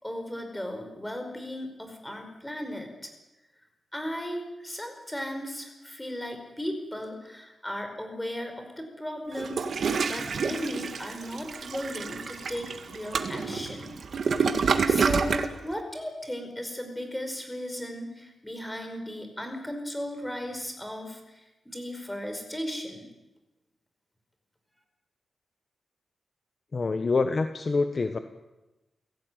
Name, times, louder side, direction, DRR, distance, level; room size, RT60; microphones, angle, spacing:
voice 1, 0.0-3.1 3.9-13.9 14.4-23.1, equal, 5° left, 5 dB, 5.0 m, -36 dB
Toilet flush, 9.3-15.5, right 5 dB, 60° right, 2.0 m, -28 dB
voice 2, 26.7-28.2, left 3 dB, 35° left, 8 dB, 1.3 m, -26 dB
29.0 x 16.5 x 9.3 m, 1.0 s
wide cardioid pair, 140°, 0 cm